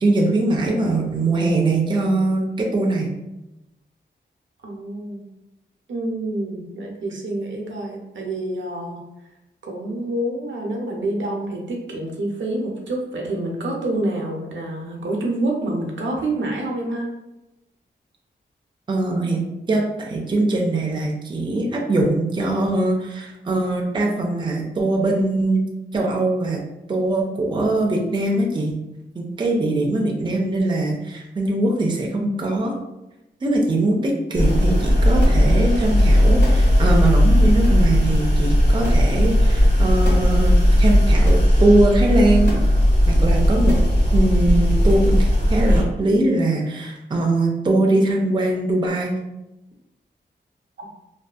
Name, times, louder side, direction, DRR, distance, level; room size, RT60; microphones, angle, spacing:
voice 1, 0.0-3.1 18.9-25.6 25.9-26.6 26.9-28.8 29.2-32.7 33.4-42.5 43.1-43.8 44.1-49.2, right 2 dB, 25° right, 0 dB, 0.4 m, -21 dB
voice 2, 4.6-5.3 5.9-9.0 9.6-17.1 50.8-50.9, right 1 dB, 85° right, 0 dB, 0.6 m, -27 dB
sound 1, 34.3-45.8, equal, 65° left, 1.3 m, -16 dB
2.6 x 2.3 x 2.3 m, 0.95 s
wide cardioid pair, 130°, 19 cm